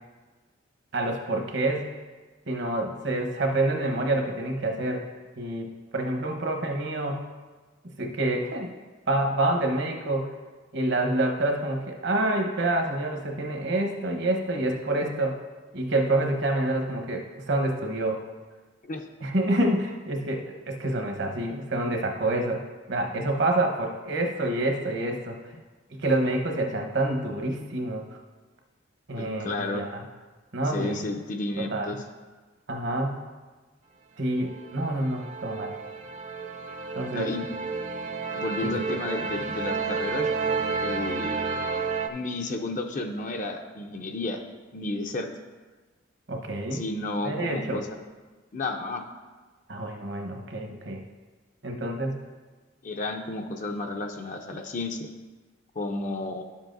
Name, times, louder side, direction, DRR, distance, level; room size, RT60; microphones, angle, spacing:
voice 1, 0.9-1.9 2.5-5.0 5.4-5.7 5.9-7.2 8.0-8.7 9.1-10.3 10.7-15.4 15.7-18.2 19.2-22.6 22.9-25.4 25.9-28.0 29.1-30.0 30.5-31.0 31.6-32.0 32.7-33.2 34.2-35.7 36.9-37.3 38.6-39.0 46.3-46.8 47.2-47.8 49.7-51.0 51.6-52.2, right 1 dB, 60° right, 3 dB, 1.0 m, -27 dB
voice 2, 29.2-29.8 30.6-32.0 37.1-37.5 38.3-40.3 40.8-41.4 42.1-44.4 44.7-45.3 46.7-47.9 48.5-49.1 52.8-55.1 55.8-56.4, left 2 dB, 40° left, 4 dB, 0.5 m, -32 dB
sound 1, 34.4-42.1, right 4 dB, 40° right, 0.5 m, -31 dB
11.0 x 7.3 x 2.6 m, 1.3 s
head